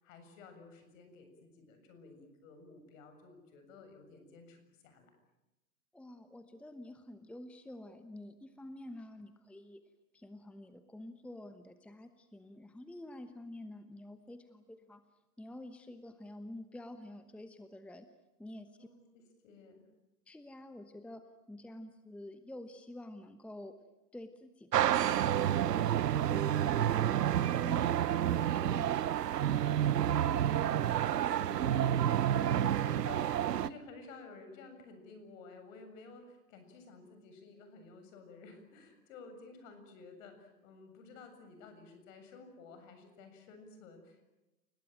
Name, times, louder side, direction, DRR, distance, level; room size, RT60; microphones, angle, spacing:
voice 1, 0.0-5.1 18.8-19.9 30.5-44.3, left 3 dB, 50° left, 7 dB, 7.3 m, -53 dB
voice 2, 5.9-9.9 10.1-15.0 15.4-18.1 18.4-18.9 20.3-23.8 24.1-27.2 27.4-29.0, left 1 dB, 5° left, 9 dB, 1.0 m, -49 dB
sound 1, 24.7-33.7, right 11 dB, 75° right, 0.9 m, -29 dB
30.0 x 18.5 x 9.1 m, 1.0 s
hypercardioid pair, 115°, 48 cm